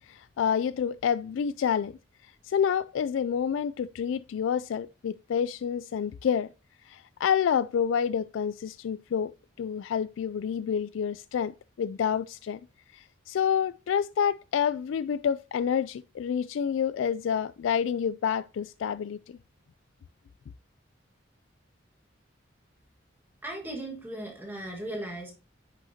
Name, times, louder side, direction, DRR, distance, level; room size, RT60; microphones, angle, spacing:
voice 1, 0.1-1.9 2.4-6.5 6.9-9.3 9.6-11.5 11.8-12.6 12.9-19.4, left 7 dB, 80° left, 0.3 m, -28 dB
voice 2, 23.4-25.3, right 1 dB, 10° right, 1.5 m, -37 dB
10.5 x 6.3 x 2.7 m
head